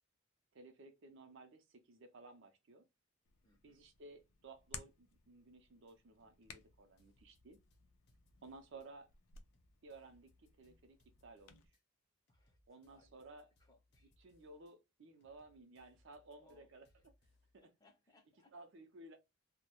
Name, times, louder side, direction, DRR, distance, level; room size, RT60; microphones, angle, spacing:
voice 1, 0.5-2.8 3.6-7.6 8.4-9.1 9.8-11.6 12.7-13.4 14.2-16.8 17.5-17.6 18.5-19.2, right 2 dB, 60° right, 0.5 m, -57 dB
Hands, 3.2-11.7, left 7 dB, 85° left, 0.4 m, -58 dB
voice 2, 3.4-3.9 12.3-13.1 13.6-14.1 15.2-15.3 16.3-17.1 17.6-18.6, left 1 dB, 20° left, 0.5 m, -71 dB
sound 1, 5.9-6.0 6.4-8.9 9.3-11.8 12.3-14.7 15.2-17.6, left 1 dB, 55° left, 0.7 m, -73 dB
2.2 x 2.0 x 2.9 m
head